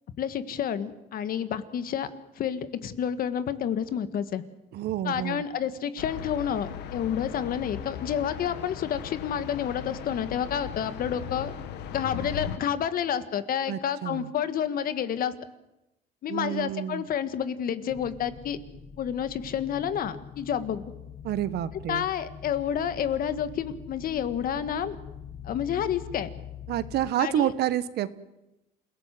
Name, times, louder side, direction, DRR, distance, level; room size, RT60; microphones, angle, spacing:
voice 1, 0.2-2.1 2.4-4.4 5.0-11.5 11.9-15.3 16.2-18.6 19.0-20.8 21.9-25.0 25.4-26.3 27.2-27.5, left 9 dB, 60° left, 12 dB, 1.7 m, -29 dB
voice 2, 4.7-5.4 13.7-14.3 16.3-17.1 21.2-22.1 26.7-28.1, right 12 dB, 75° right, 14 dB, 1.3 m, -29 dB
sound 1, 6.0-12.6, left 9 dB, 85° left, 1.8 m, -38 dB
sound 2, 17.9-27.1, left 8 dB, 40° left, 1.6 m, -44 dB
28.0 x 17.5 x 7.7 m, 0.94 s
cardioid pair, 110°, 17 cm